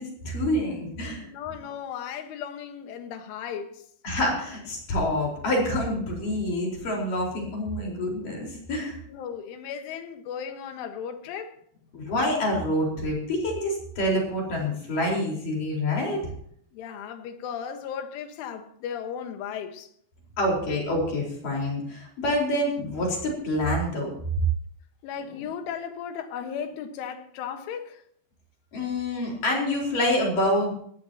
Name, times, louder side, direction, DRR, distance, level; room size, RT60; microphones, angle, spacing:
voice 1, 0.0-1.3 4.0-9.0 11.9-16.3 20.4-24.1 28.7-30.7, left 1 dB, 45° left, 5.8 m, -27 dB
voice 2, 1.2-3.8 9.1-11.6 16.7-19.9 25.0-28.0, left 8 dB, 80° left, 3.9 m, -36 dB
20.0 x 16.5 x 2.9 m
omnidirectional pair, 5.6 m